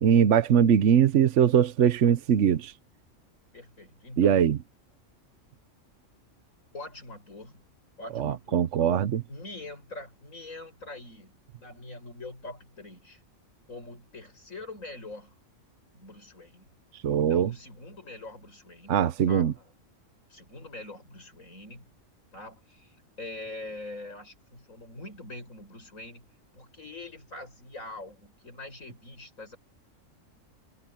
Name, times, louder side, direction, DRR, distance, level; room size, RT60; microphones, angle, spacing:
voice 1, 0.0-2.7 4.2-4.6 8.2-9.2 17.0-17.5 18.9-19.5, right 8 dB, 65° right, 1.1 m, -21 dB
voice 2, 3.5-4.4 6.7-7.6 8.0-8.7 9.3-13.2 13.7-15.4 15.9-16.7 17.3-19.7 20.3-21.9 22.3-26.3 26.5-29.6, left 2 dB, 90° left, 7.4 m, -44 dB
omnidirectional pair, 1.4 m